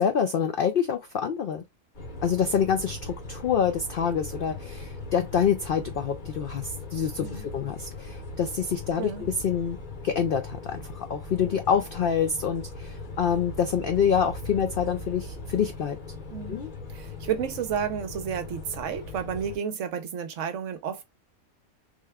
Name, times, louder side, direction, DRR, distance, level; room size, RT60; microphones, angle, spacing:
voice 1, 0.0-1.6 2.2-9.8 10.0-16.0 16.5-16.7, left 7 dB, 90° left, 0.4 m, -26 dB
sound 1, 1.9-19.6, left 2 dB, 40° left, 0.8 m, -39 dB
voice 2, 16.9-21.0, right 8 dB, 65° right, 0.9 m, -31 dB
3.5 x 2.2 x 3.4 m
omnidirectional pair, 1.5 m